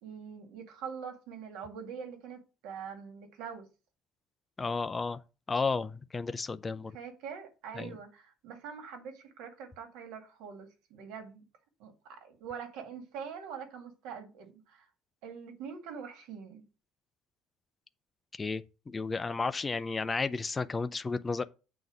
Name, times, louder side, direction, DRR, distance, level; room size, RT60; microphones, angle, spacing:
voice 1, 0.0-3.7 6.6-11.4 11.8-14.9 15.2-16.7, right 7 dB, 80° right, 1.8 m, -44 dB
voice 2, 4.6-5.2 5.5-6.9 7.7-8.0 18.3-21.4, left 4 dB, 15° left, 0.3 m, -33 dB
8.0 x 4.0 x 6.1 m
cardioid pair, 180°, 0 cm